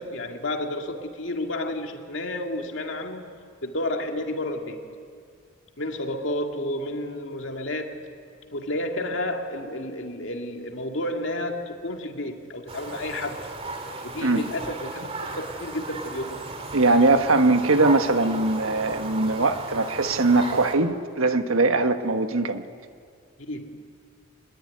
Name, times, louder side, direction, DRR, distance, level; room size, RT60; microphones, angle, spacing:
voice 1, 0.0-4.8 5.8-8.0 8.5-13.4 14.0-16.4 23.5-23.8, left 1 dB, 65° left, 3 dB, 2.3 m, -31 dB
sound 1, 12.7-20.8, right 3 dB, 30° right, 2.4 m, -35 dB
voice 2, 16.7-22.6, right 3 dB, 85° right, 7 dB, 1.5 m, -21 dB
25.5 x 20.0 x 9.8 m, 2.2 s
head